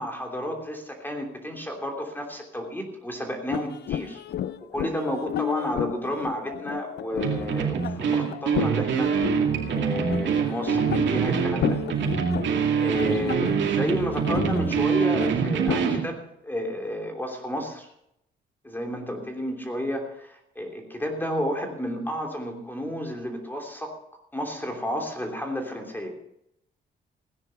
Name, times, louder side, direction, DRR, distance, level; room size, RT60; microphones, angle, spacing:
voice 1, 0.0-4.2 4.7-9.1 9.7-11.8 12.8-17.9 18.6-23.9 24.3-26.1, equal, 10° left, 2 dB, 3.1 m, -31 dB
sound 1, 3.5-16.0, left 11 dB, 60° left, 0.6 m, -33 dB
sound 2, 7.2-16.1, right 7 dB, 65° right, 2.3 m, -25 dB
17.0 x 9.9 x 5.7 m, 0.77 s
cardioid pair, 90°, 20 cm